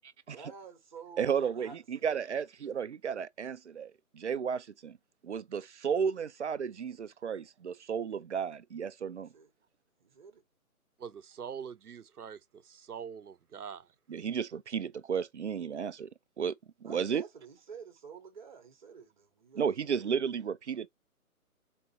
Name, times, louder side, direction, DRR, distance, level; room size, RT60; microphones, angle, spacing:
voice 1, 0.3-2.0 9.1-9.5 10.0-10.4 16.8-20.1, right 6 dB, 30° right, 1.3 m, -50 dB
voice 2, 1.2-5.0 5.2-9.3 14.1-16.1 16.4-16.5 16.8-17.2 19.6-20.9, right 7 dB, 50° right, 0.5 m, -33 dB
voice 3, 11.0-13.9, right 7 dB, 85° right, 0.7 m, -44 dB
4.0 x 2.8 x 4.3 m
figure-of-eight pair, 150°, 44 cm